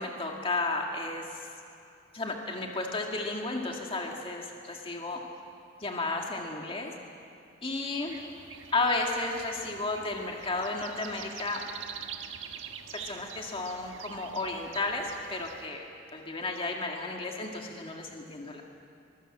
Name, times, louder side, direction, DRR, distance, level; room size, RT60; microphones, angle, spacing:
voice 1, 0.0-1.4 2.1-5.2 5.8-6.9 7.6-8.2 8.7-11.7 12.9-15.9 16.1-18.6, left 2 dB, 30° left, 1 dB, 2.0 m, -33 dB
sound 1, 8.1-15.7, right 8 dB, 85° right, 1.4 m, -45 dB
24.0 x 21.0 x 7.7 m, 2.5 s
head